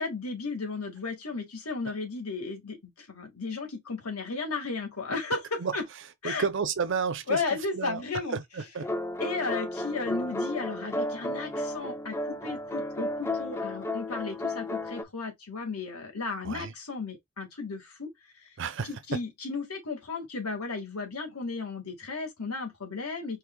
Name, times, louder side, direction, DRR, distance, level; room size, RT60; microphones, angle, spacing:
voice 1, 0.0-5.9 6.2-6.4 7.3-8.4 9.2-18.1 18.8-23.4, left 4 dB, 80° left, 1.9 m, -34 dB
voice 2, 6.2-7.4 7.7-8.0 8.3-8.9 16.4-16.7 18.6-18.9, right 5 dB, 55° right, 0.5 m, -31 dB
sound 1, 8.8-15.0, left 1 dB, 10° left, 0.4 m, -33 dB
4.8 x 3.3 x 2.3 m
head